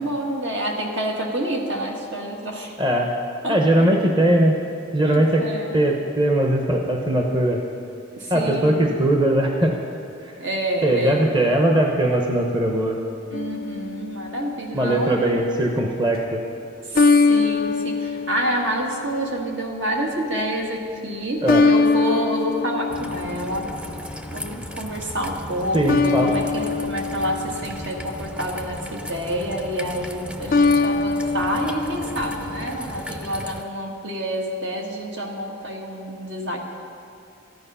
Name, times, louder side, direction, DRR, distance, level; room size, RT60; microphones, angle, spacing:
voice 1, 0.0-2.8 3.4-3.6 5.0-5.8 8.2-8.8 10.4-11.3 13.3-15.3 16.9-23.7 24.3-36.6, right 1 dB, 70° right, 0 dB, 1.9 m, -28 dB
voice 2, 2.8-3.1 3.5-4.5 4.9-5.5 5.7-7.6 8.3-9.7 10.2-10.3 10.8-13.0 14.7-16.4 21.4-21.7 25.7-26.3, right 1 dB, 25° right, 1 dB, 0.9 m, -20 dB
sound 1, 13.3-14.7 16.9-19.4 21.5-24.1 25.9-28.4 30.5-32.8, left 4 dB, 50° left, 0.4 m, -23 dB
Raindrop / Trickle dribble, 22.9-33.6, equal, 5° right, 0.5 m, -36 dB
14.0 x 10.5 x 5.6 m, 2.5 s
head